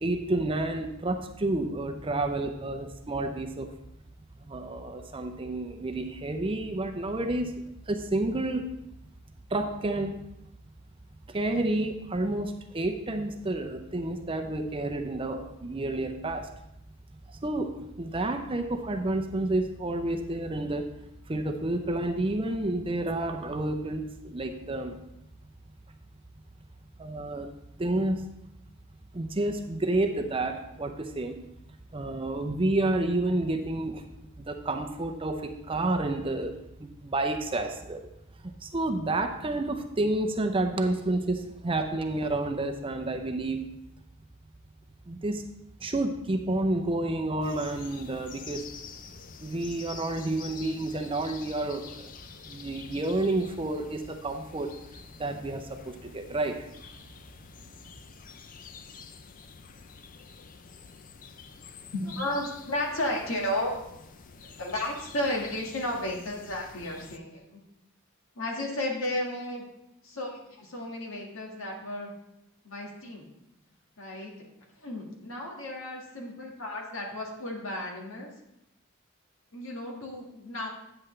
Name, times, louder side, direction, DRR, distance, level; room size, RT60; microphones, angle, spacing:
voice 1, 0.0-3.7 4.4-7.5 7.9-8.7 9.5-10.2 11.3-16.5 17.3-20.9 21.3-25.0 27.0-27.5 27.8-28.2 29.1-31.4 31.9-34.0 34.4-38.1 38.6-43.7 45.1-45.4 45.8-48.7 49.4-52.1 52.5-54.7 55.2-56.7, right 2 dB, 25° right, 5 dB, 0.6 m, -30 dB
sound 1, 47.4-67.2, left 5 dB, 40° left, 0.5 m, -48 dB
voice 2, 61.9-63.8 64.6-67.6 68.4-69.6 70.0-72.1 72.6-73.3 74.0-74.3 74.8-78.3 79.5-80.7, left 1 dB, 65° left, -1 dB, 1.8 m, -33 dB
8.8 x 7.8 x 3.2 m, 0.84 s
head